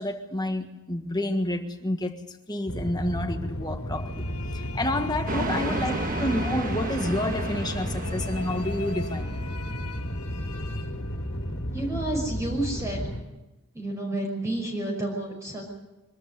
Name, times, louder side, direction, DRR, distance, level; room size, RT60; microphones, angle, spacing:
voice 1, 0.0-4.3 4.5-9.4, left 1 dB, 20° left, 1.6 m, -29 dB
sound 1, 2.7-13.2, equal, 70° left, 2.7 m, -33 dB
sound 2, 3.9-11.7, left 5 dB, 90° left, 1.3 m, -43 dB
sound 3, 5.3-9.8, right 2 dB, 35° right, 1.4 m, -33 dB
voice 2, 5.6-6.2 11.7-13.1 13.7-15.7, right 1 dB, 15° right, 5.9 m, -31 dB
24.5 x 13.5 x 9.5 m
head